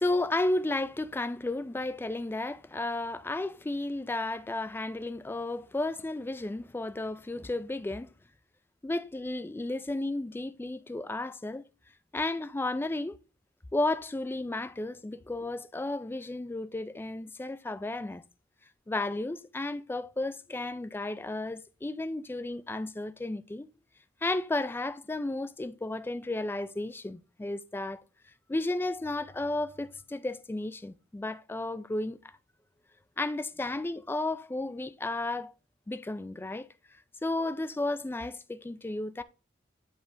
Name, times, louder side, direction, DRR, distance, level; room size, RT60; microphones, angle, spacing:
voice 1, 0.0-8.1 8.8-11.6 12.1-13.2 13.7-18.2 18.9-23.7 24.2-28.0 28.5-32.2 33.2-35.5 35.9-36.7 37.2-39.2, left 2 dB, 10° left, 0.3 m, -33 dB
8.3 x 5.0 x 2.5 m
head